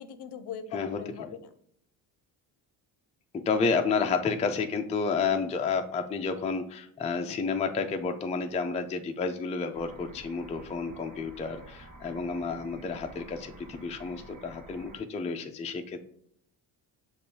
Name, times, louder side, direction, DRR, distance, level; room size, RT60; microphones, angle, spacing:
voice 1, 0.0-1.5 12.0-12.4, left 7 dB, 55° left, 10 dB, 0.6 m, -42 dB
voice 2, 3.3-16.0, left 5 dB, 15° left, 5 dB, 0.4 m, -30 dB
sound 1, 9.7-15.0, right 2 dB, 40° right, 1.2 m, -50 dB
6.6 x 2.6 x 2.7 m, 0.69 s
supercardioid pair, 60°, 49 cm